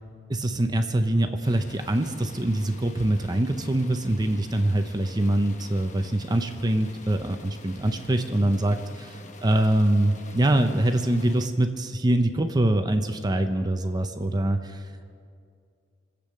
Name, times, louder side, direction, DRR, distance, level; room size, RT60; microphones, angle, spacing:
voice 1, 0.3-9.1 9.4-14.8, right 1 dB, 25° right, 7 dB, 0.7 m, -24 dB
sound 1, 1.4-11.5, left 3 dB, 45° left, 1.0 m, -47 dB
25.0 x 8.5 x 6.5 m, 2.3 s
head